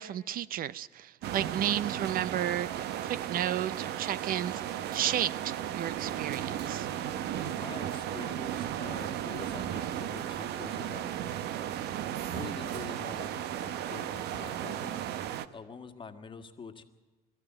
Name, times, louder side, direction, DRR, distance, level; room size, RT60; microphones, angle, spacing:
voice 1, 0.0-6.9, right 11 dB, 60° right, 19 dB, 0.5 m, -33 dB
sound 1, 1.2-15.5, right 11 dB, 80° right, 0.9 m, -35 dB
Mechanisms, 3.5-13.6, right 1 dB, 35° right, 5.1 m, -55 dB
voice 2, 7.4-11.1 12.1-15.0 15.5-16.8, left 5 dB, 30° left, 7 dB, 1.7 m, -45 dB
22.0 x 14.0 x 9.1 m, 1.3 s
cardioid pair, 110°, 17 cm